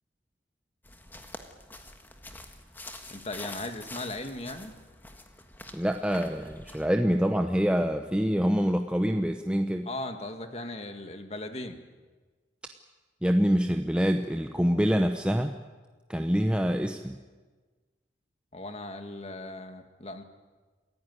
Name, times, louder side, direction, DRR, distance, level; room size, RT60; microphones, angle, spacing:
sound 1, 0.8-6.9, left 2 dB, 10° left, 1.6 m, -46 dB
voice 1, 3.1-4.7 9.9-11.8 18.5-20.2, left 2 dB, 35° left, 6 dB, 2.0 m, -38 dB
voice 2, 5.7-9.9 13.2-15.5 16.1-17.2, equal, 5° right, 5 dB, 0.8 m, -25 dB
28.0 x 16.0 x 9.7 m, 1.4 s
head